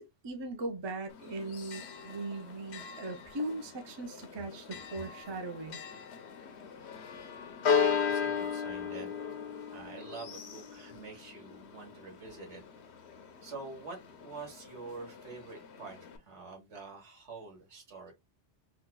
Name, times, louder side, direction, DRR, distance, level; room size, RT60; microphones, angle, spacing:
voice 1, 0.2-5.8, right 2 dB, 35° right, 0.5 m, -39 dB
Church bell, 1.1-16.2, left 6 dB, 70° left, 0.9 m, -37 dB
voice 2, 6.6-7.3 7.6-9.2 9.7-12.6 13.4-18.1, right 4 dB, 75° right, 1.6 m, -47 dB
4.6 x 2.2 x 2.2 m
omnidirectional pair, 1.2 m